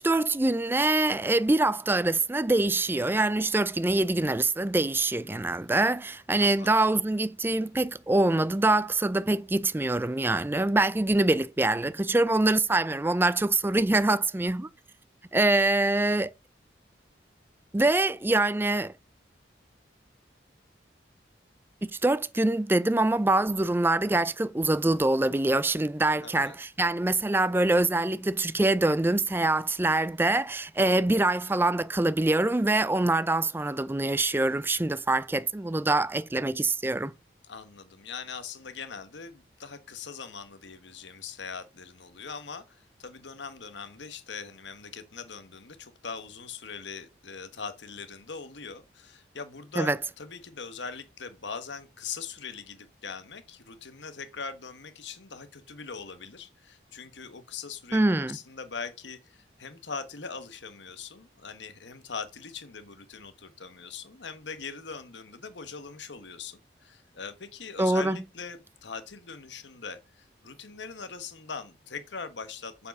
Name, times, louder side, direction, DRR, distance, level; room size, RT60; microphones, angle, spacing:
voice 1, 0.0-14.7 15.3-16.3 17.7-18.9 21.8-37.1 49.8-50.0 57.9-58.4 67.8-68.2, right 2 dB, 10° right, 0.4 m, -24 dB
voice 2, 6.4-6.7 26.2-26.6 37.4-58.0 58.3-72.9, left 5 dB, 85° left, 1.2 m, -41 dB
7.3 x 6.8 x 5.3 m
head